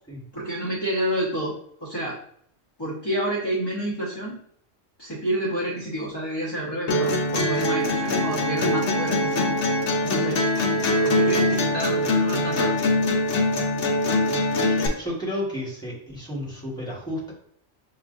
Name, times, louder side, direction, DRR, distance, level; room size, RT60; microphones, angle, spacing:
voice 1, 0.3-1.5 1.8-2.2 2.8-4.4 5.0-9.5 10.0-10.4 11.0-12.8, right 1 dB, 25° left, -6 dB, 0.8 m, -29 dB
sound 1, 6.9-14.9, left 1 dB, 70° left, 1.0 m, -23 dB
voice 2, 14.7-17.3, left 1 dB, 5° left, -6 dB, 1.4 m, -32 dB
6.9 x 2.4 x 2.5 m, 0.68 s
omnidirectional pair, 1.3 m